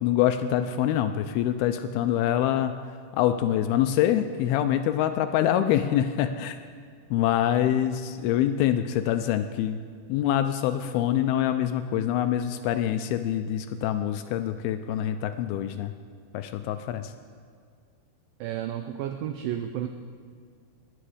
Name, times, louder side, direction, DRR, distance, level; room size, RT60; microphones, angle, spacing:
voice 1, 0.0-2.8 3.2-6.6 7.1-9.8 10.1-15.9 16.3-17.1, left 11 dB, 80° left, 9 dB, 2.3 m, -25 dB
voice 2, 18.4-19.9, right 11 dB, 85° right, 7 dB, 2.0 m, -32 dB
21.5 x 9.5 x 5.0 m, 2.1 s
omnidirectional pair, 4.7 m